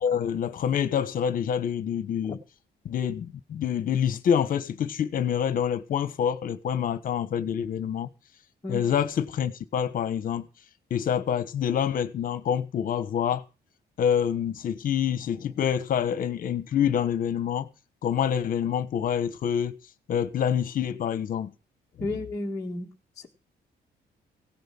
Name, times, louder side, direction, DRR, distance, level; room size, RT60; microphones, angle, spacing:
voice 1, 0.0-2.4 2.8-8.1 8.7-10.5 10.9-13.4 14.0-17.7 18.0-19.8 20.1-21.5 22.0-22.1, left 8 dB, 50° left, 1.3 m, -26 dB
voice 2, 22.0-22.9, left 2 dB, 20° left, 1.6 m, -32 dB
17.5 x 9.2 x 6.0 m
cardioid pair, 180°, 18 cm